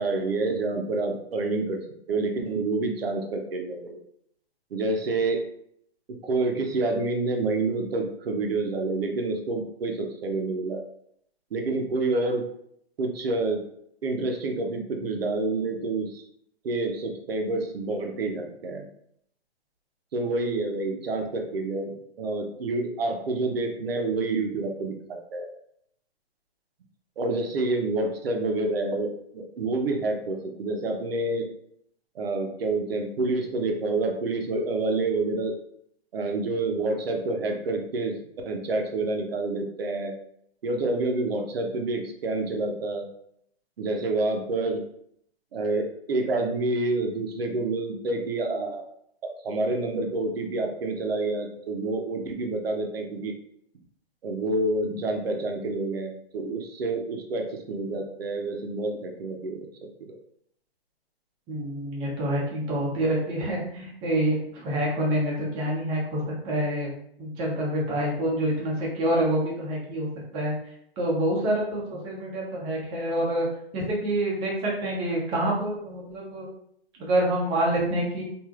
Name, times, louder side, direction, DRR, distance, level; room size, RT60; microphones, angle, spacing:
voice 1, 0.0-1.8 2.1-4.0 4.7-5.4 6.2-10.8 11.5-12.4 13.0-13.6 14.0-16.2 16.6-18.9 20.1-25.5 27.2-31.5 32.1-35.5 36.1-38.2 38.5-40.1 40.6-43.1 43.8-44.8 45.5-48.9 49.2-53.3 54.2-59.7, right 2 dB, 70° right, 3 dB, 0.7 m, -28 dB
voice 2, 61.5-66.9 67.2-70.1 70.3-70.5 71.0-73.5 73.7-76.5 77.0-78.2, right 1 dB, 15° right, -4 dB, 0.7 m, -27 dB
3.2 x 2.5 x 2.4 m, 0.69 s
hypercardioid pair, 140°, 32 cm